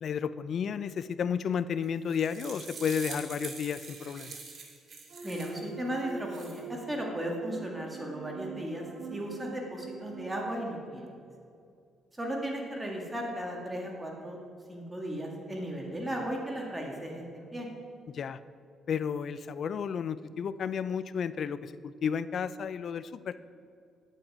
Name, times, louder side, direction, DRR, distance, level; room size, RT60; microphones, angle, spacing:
voice 1, 0.0-4.3 18.1-18.4 18.9-23.3, left 7 dB, 60° left, 15 dB, 0.4 m, -32 dB
sound 1, 1.8-5.6 6.1-6.6, right 4 dB, 50° right, 2.1 m, -44 dB
sound 2, 5.1-10.5, right 4 dB, 75° right, 1.6 m, -44 dB
voice 2, 5.2-8.8 9.1-11.1 12.1-14.4 14.7-17.7, right 1 dB, 15° right, 0 dB, 2.1 m, -36 dB
10.0 x 9.1 x 4.9 m, 2.5 s
cardioid pair, 90°, 0 cm